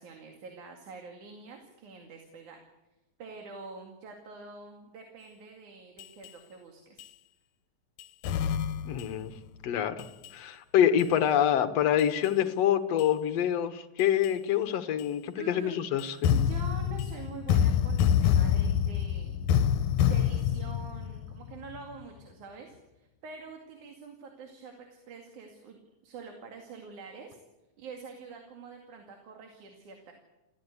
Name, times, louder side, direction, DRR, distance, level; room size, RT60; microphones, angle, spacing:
voice 1, 0.0-2.6 3.2-7.1 15.4-15.7 16.3-19.5 20.0-27.4 27.8-30.1, right 5 dB, 85° right, 3 dB, 3.8 m, -46 dB
sound 1, 6.0-6.3 7.0-7.1 8.0-9.3 10.0-10.3 11.0-11.1 12.0-12.3 13.0-13.1 14.0-14.3 15.0-15.1 16.0-21.8, left 9 dB, 85° left, 2.4 m, -27 dB
voice 2, 8.9-9.3 9.6-10.1 10.3-16.3, left 10 dB, 65° left, 9 dB, 2.3 m, -26 dB
28.0 x 15.5 x 8.3 m, 1.0 s
omnidirectional pair, 3.4 m